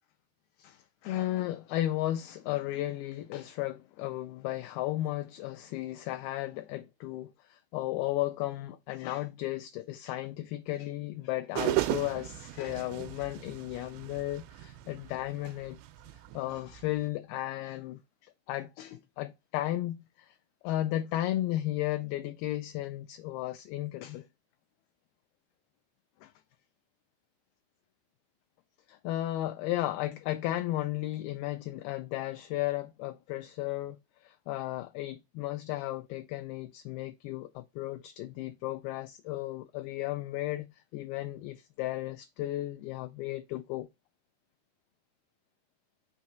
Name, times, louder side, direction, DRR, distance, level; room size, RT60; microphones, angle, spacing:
voice 1, 0.6-15.8 16.3-20.4 20.6-24.2 26.2-26.3 28.9-34.0 34.2-43.9, left 15 dB, 85° left, 2.2 m, -34 dB
sound 1, 11.6-17.1, right 18 dB, 90° right, 2.8 m, -36 dB
6.3 x 3.0 x 5.8 m
omnidirectional pair, 4.9 m